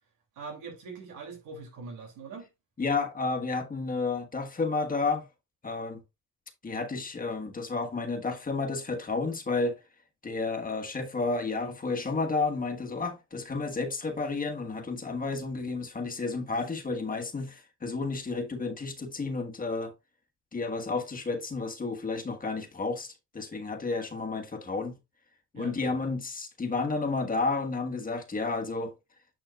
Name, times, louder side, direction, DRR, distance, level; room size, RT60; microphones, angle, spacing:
voice 1, 0.4-2.5 25.5-25.7, right 4 dB, 85° right, 2.8 m, -42 dB
voice 2, 2.8-5.3 5.6-6.0 6.6-9.8 10.2-19.9 20.5-25.0 25.5-28.9, left 3 dB, 30° left, 1.4 m, -31 dB
9.2 x 5.4 x 2.4 m
cardioid pair, 90°, 30 cm